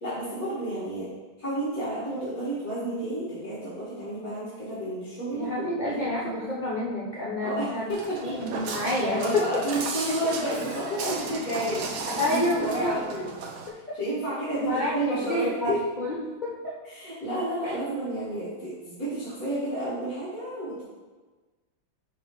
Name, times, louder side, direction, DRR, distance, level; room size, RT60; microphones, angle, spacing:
voice 1, 0.0-1.1 1.4-6.0 7.4-8.3 9.0-11.9 12.2-13.3 14.0-15.8 16.8-20.8, right 1 dB, 45° left, -11 dB, 2.2 m, -31 dB
voice 2, 5.3-7.8 8.2-9.4 10.0-10.1 12.2-13.0 14.6-15.7 16.0-16.1 16.4-16.6 17.6-17.7, left 1 dB, 80° left, -6 dB, 0.4 m, -28 dB
Walk footsteps, 7.9-13.7, right 4 dB, 65° right, 0.9 m, -35 dB
6.9 x 3.0 x 5.1 m, 1.3 s
omnidirectional pair, 2.2 m